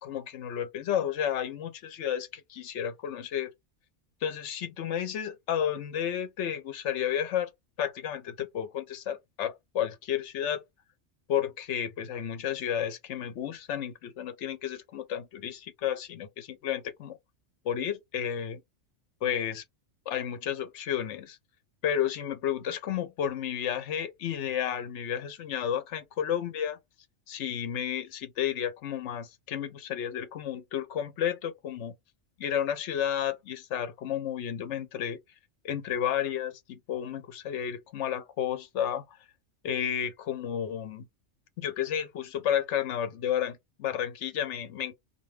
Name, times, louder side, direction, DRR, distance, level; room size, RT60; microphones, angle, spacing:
voice 1, 0.0-3.5 4.2-7.5 7.8-10.6 11.3-17.2 17.6-18.6 19.2-19.6 20.1-21.4 21.8-26.8 27.3-31.9 32.4-35.2 35.6-39.2 39.6-41.1 41.6-44.9, left 9 dB, 75° left, 0.9 m, -32 dB
2.5 x 2.2 x 3.1 m
omnidirectional pair, 1.3 m